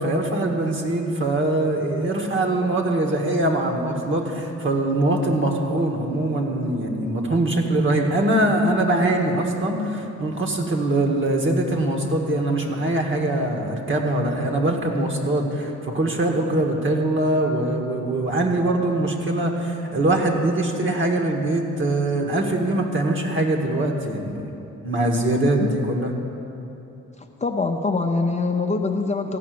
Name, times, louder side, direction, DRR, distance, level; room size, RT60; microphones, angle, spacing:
voice 1, 0.0-24.5 24.8-26.1, right 1 dB, 40° right, 2 dB, 1.8 m, -22 dB
voice 2, 27.4-29.4, left 3 dB, 25° left, 3 dB, 0.7 m, -23 dB
14.5 x 5.6 x 9.4 m, 2.9 s
cardioid pair, 90°, 30 cm